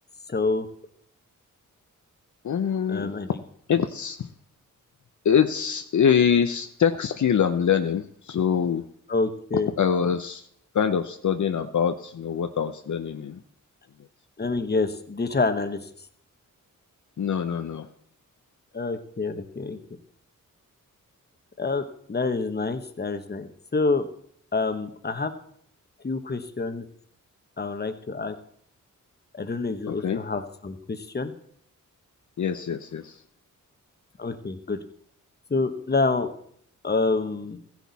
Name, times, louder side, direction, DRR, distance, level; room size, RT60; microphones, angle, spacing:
voice 1, 0.3-0.7 2.9-3.3 9.1-9.7 14.4-15.9 18.7-19.8 21.6-24.1 24.5-25.3 26.0-26.8 27.6-28.3 29.3-31.3 34.2-34.8 35.5-36.3 36.8-37.6, left 3 dB, 30° left, 9 dB, 1.2 m, -27 dB
voice 2, 2.4-3.1 3.7-4.3 5.2-8.8 9.8-10.4 10.7-13.4 17.2-17.9 29.9-30.2 32.4-33.1, left 7 dB, 65° left, 7 dB, 0.8 m, -24 dB
15.0 x 10.5 x 4.1 m, 0.66 s
wide cardioid pair, 85°, 33 cm